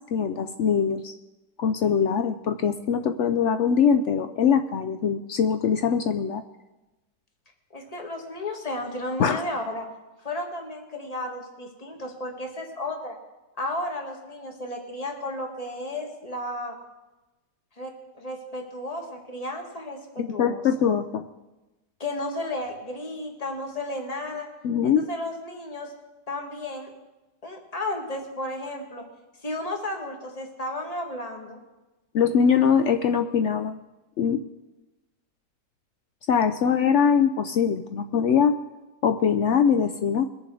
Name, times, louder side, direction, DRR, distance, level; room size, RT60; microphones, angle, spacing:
voice 1, 0.1-1.1 1.6-6.4 9.2-9.4 20.2-21.2 24.6-25.1 32.1-33.8 34.2-34.4 36.3-38.6 39.0-40.3, left 7 dB, 85° left, 8 dB, 0.6 m, -22 dB
voice 2, 7.7-9.9 10.2-13.2 13.6-16.8 17.8-20.6 22.0-24.5 24.8-25.9 26.3-26.9 27.4-29.0 29.4-31.6, left 1 dB, 20° left, 2 dB, 1.8 m, -33 dB
21.5 x 7.3 x 4.9 m, 1.1 s
omnidirectional pair, 1.9 m